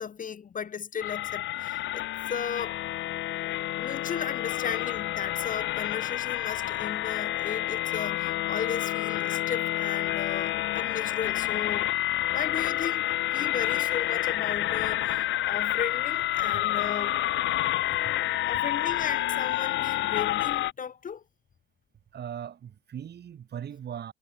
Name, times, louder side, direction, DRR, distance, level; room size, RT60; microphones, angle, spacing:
voice 1, 0.0-2.8 3.8-11.9 12.3-17.2 18.5-21.2, left 7 dB, 40° left, 1.1 m, -35 dB
sound 1, 1.0-20.7, left 15 dB, 70° left, 0.4 m, -29 dB
voice 2, 17.5-18.2 18.5-18.6 22.1-24.1, right 9 dB, 55° right, 2.1 m, -40 dB
cardioid pair, 90°, 20 cm